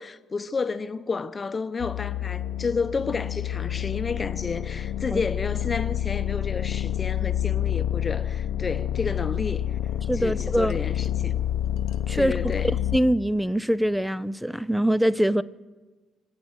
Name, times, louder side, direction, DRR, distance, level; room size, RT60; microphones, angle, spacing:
voice 1, 0.0-9.6 10.2-11.4 12.1-12.7, left 4 dB, 35° left, 0.8 m, -31 dB
sound 1, 1.8-13.0, left 11 dB, 80° left, 0.8 m, -28 dB
voice 2, 10.1-10.8 12.1-12.3 12.9-15.4, equal, ahead, 0.5 m, -23 dB
25.5 x 8.6 x 6.6 m
cardioid pair, 90°, 0 cm